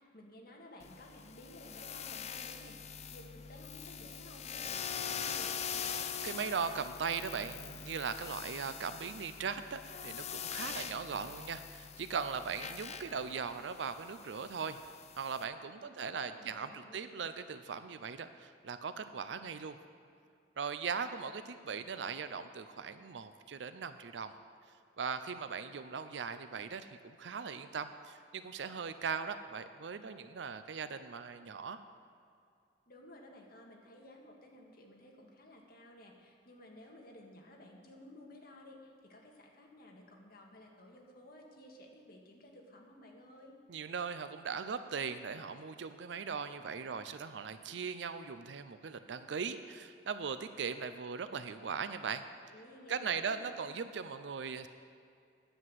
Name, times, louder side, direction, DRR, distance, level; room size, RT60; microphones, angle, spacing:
voice 1, 0.1-6.0 15.7-17.3 32.9-43.5 52.5-53.8, left 1 dB, 60° left, 0 dB, 1.7 m, -55 dB
sound 1, 0.8-15.4, left 7 dB, 40° left, 0.6 m, -43 dB
voice 2, 6.2-14.8 15.2-19.8 20.6-24.3 25.0-31.8 43.7-52.2 52.9-54.7, right 6 dB, 90° right, 11 dB, 0.5 m, -39 dB
10.0 x 8.0 x 7.5 m, 2.4 s
head